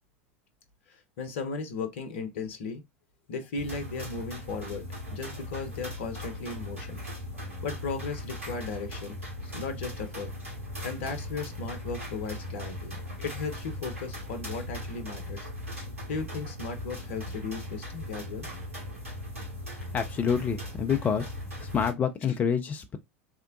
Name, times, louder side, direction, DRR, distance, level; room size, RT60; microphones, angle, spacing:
voice 1, 0.9-2.8 3.3-4.8 5.1-7.0 7.6-10.3 10.8-15.5 16.1-18.5, left 4 dB, 60° left, 0.7 m, -36 dB
sound 1, 3.5-21.9, left 1 dB, 75° right, 1.4 m, -39 dB
voice 2, 19.9-21.3 21.6-23.0, left 7 dB, 20° left, 0.4 m, -27 dB
3.2 x 2.8 x 2.4 m
figure-of-eight pair, 80°, 7 cm